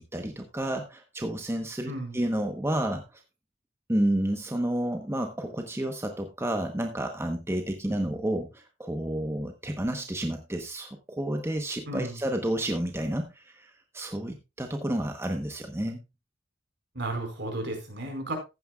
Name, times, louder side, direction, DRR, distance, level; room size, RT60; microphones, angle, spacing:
voice 1, 0.0-3.2 3.9-16.0, right 1 dB, 15° right, 4 dB, 1.0 m, -30 dB
voice 2, 1.9-2.2 11.9-12.1 16.9-18.3, right 2 dB, 65° right, 3 dB, 4.4 m, -33 dB
15.0 x 9.3 x 2.3 m, 0.25 s
head